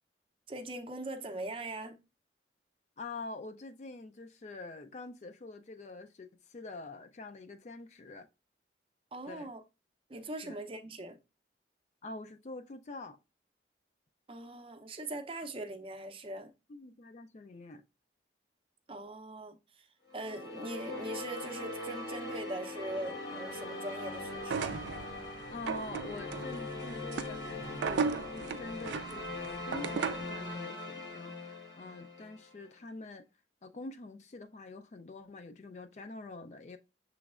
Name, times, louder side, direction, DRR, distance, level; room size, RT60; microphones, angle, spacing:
voice 1, 0.5-2.0 9.1-9.6 10.1-11.2 14.3-16.5 18.9-19.9 20.1-24.7, right 1 dB, 30° right, 0.5 m, -41 dB
voice 2, 3.0-8.3 9.2-9.5 10.4-10.6 12.0-13.2 16.7-17.8 25.5-33.2 33.6-36.8, left 2 dB, 40° left, 0.3 m, -45 dB
sound 1, 20.1-32.5, left 2 dB, 70° left, 1.3 m, -41 dB
sound 2, 24.4-30.4, right 5 dB, 85° right, 0.3 m, -37 dB
6.8 x 3.1 x 2.4 m
head